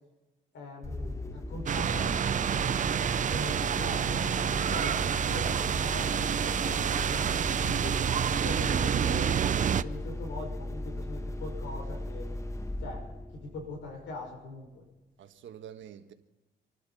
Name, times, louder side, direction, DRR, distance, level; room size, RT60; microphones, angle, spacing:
voice 1, 0.5-2.2 3.3-6.1 6.6-7.3 7.5-12.3 12.8-14.8, left 2 dB, 75° left, 5.8 m, -42 dB
sound 1, 0.8-14.3, left 1 dB, 15° left, 1.1 m, -37 dB
sound 2, 1.7-9.8, right 8 dB, 40° right, 0.5 m, -28 dB
voice 2, 15.2-16.1, right 9 dB, 70° right, 1.5 m, -47 dB
26.5 x 12.0 x 4.2 m
cardioid pair, 90°, 20 cm